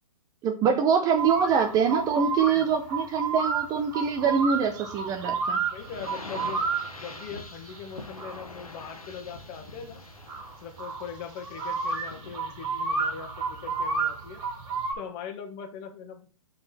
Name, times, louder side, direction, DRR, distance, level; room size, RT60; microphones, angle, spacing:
voice 1, 0.4-5.6, right 6 dB, 20° right, 6 dB, 0.7 m, -24 dB
sound 1, 1.2-14.9, right 4 dB, 40° right, 1.9 m, -32 dB
sound 2, 5.7-12.4, left 3 dB, 90° left, 1.3 m, -45 dB
voice 2, 5.7-6.6 7.0-10.0 10.6-14.4 14.9-16.3, left 7 dB, 35° left, 5 dB, 1.4 m, -41 dB
6.5 x 4.7 x 4.2 m, 0.37 s
hypercardioid pair, 130°, 18 cm